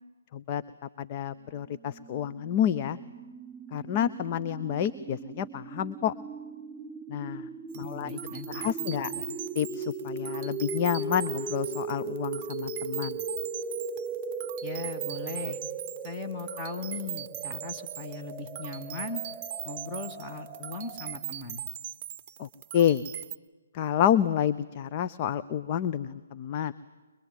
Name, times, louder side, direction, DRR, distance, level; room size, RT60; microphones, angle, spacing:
voice 1, 1.0-3.0 3.7-6.1 7.1-7.5 7.7-8.2 8.5-9.1 9.6-13.2 22.4-23.0 23.7-26.7, left 9 dB, 35° left, 13 dB, 0.7 m, -29 dB
sound 1, 2.0-21.2, right 4 dB, 10° right, 4.6 m, -38 dB
sound 2, 7.7-23.4, right 11 dB, 30° right, 0.8 m, -40 dB
voice 2, 7.8-8.7 9.0-9.3 14.6-15.6 16.0-19.2 19.6-21.6, left 3 dB, 15° left, 4 dB, 1.8 m, -39 dB
23.5 x 22.5 x 9.2 m, 1.3 s
figure-of-eight pair, 140°, 0 cm